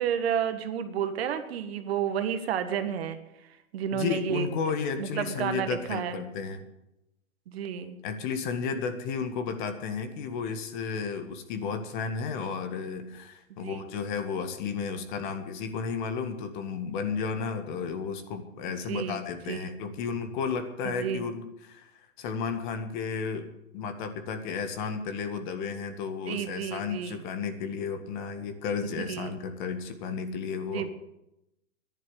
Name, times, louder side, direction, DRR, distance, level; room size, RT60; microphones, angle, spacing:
voice 1, 0.0-4.5 5.0-6.2 7.5-8.0 13.6-13.8 18.8-19.2 19.5-19.6 20.8-21.2 26.3-27.2 29.1-29.4 30.7-30.9, right 8 dB, 50° right, 9 dB, 1.6 m, -31 dB
voice 2, 3.9-6.6 8.0-23.5 23.7-30.9, left 5 dB, 35° left, 8 dB, 1.8 m, -33 dB
11.0 x 10.5 x 9.6 m, 0.88 s
hypercardioid pair, 145°, 40 cm